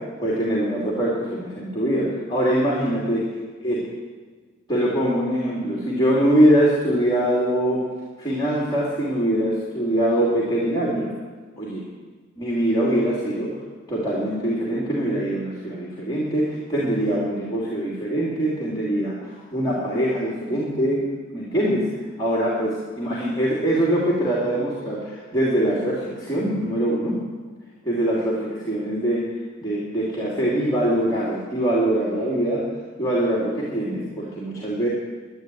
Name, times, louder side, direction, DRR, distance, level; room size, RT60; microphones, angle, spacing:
voice 1, 0.0-3.2 3.6-3.9 4.7-7.8 8.2-11.1 11.6-11.9 12.4-13.6 13.9-21.9 22.2-27.3 27.8-29.3 29.6-32.7 33.0-34.9, right 1 dB, 20° left, -6 dB, 3.1 m, -23 dB
12.0 x 10.5 x 9.5 m, 1.4 s
head